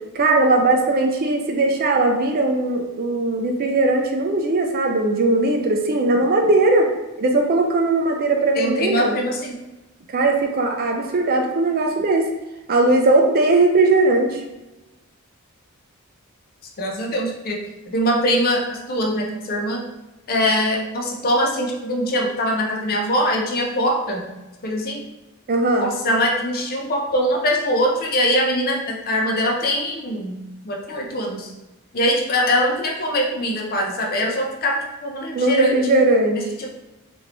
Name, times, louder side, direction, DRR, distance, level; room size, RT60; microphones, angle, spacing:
voice 1, 0.1-6.9 7.2-9.2 10.1-12.3 12.7-14.4 25.5-25.9 35.3-36.4, right 2 dB, 45° right, 3 dB, 0.4 m, -19 dB
voice 2, 8.5-9.6 16.8-17.6 17.9-19.8 20.3-24.3 24.6-25.0 25.8-30.4 30.6-31.5 31.9-35.8 36.3-36.7, equal, 45° left, 0 dB, 0.5 m, -22 dB
3.3 x 2.6 x 2.9 m, 1.0 s
head